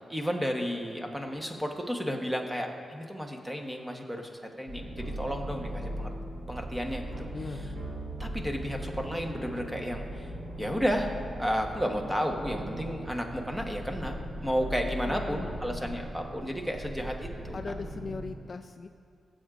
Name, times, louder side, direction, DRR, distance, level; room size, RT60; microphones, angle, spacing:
voice 1, 0.1-6.1 6.5-7.3 8.2-10.3 10.6-14.1 14.4-17.6, equal, 5° right, 2 dB, 1.1 m, -32 dB
sound 1, 4.7-18.3, right 1 dB, 85° right, 2.2 m, -39 dB
voice 2, 7.3-7.6 15.0-16.1 17.5-18.9, left 4 dB, 45° left, 8 dB, 0.3 m, -40 dB
20.0 x 7.9 x 2.5 m, 2.3 s
wide cardioid pair, 100°, 0 cm